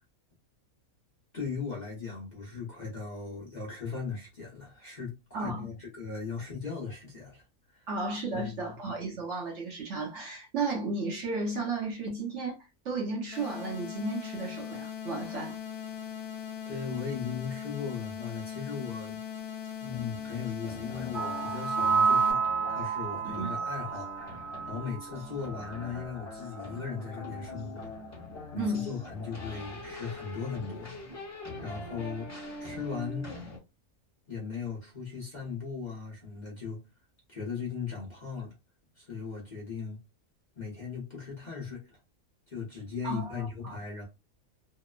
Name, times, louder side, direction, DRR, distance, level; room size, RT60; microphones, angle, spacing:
voice 1, 1.3-7.4 7.7-7.9 8.3-8.7 16.6-19.2 19.8-22.4 22.7-24.4 24.6-27.9 28.5-31.0 31.6-32.3 32.6-33.3 34.3-36.8 37.3-38.5 39.0-40.0 40.6-41.8 42.5-44.0, left 5 dB, 40° left, 0.8 m, -38 dB
voice 2, 5.3-5.7 7.9-12.6 12.8-15.6 23.2-23.5 28.6-28.9 43.0-43.8, right 3 dB, 60° right, 1.0 m, -34 dB
sound 1, 13.3-22.3, left 9 dB, 80° left, 1.0 m, -39 dB
sound 2, 19.9-33.6, left 2 dB, 10° left, 1.1 m, -43 dB
sound 3, 21.1-25.2 25.5-25.8, right 5 dB, 80° right, 0.4 m, -29 dB
2.9 x 2.0 x 2.3 m
omnidirectional pair, 1.5 m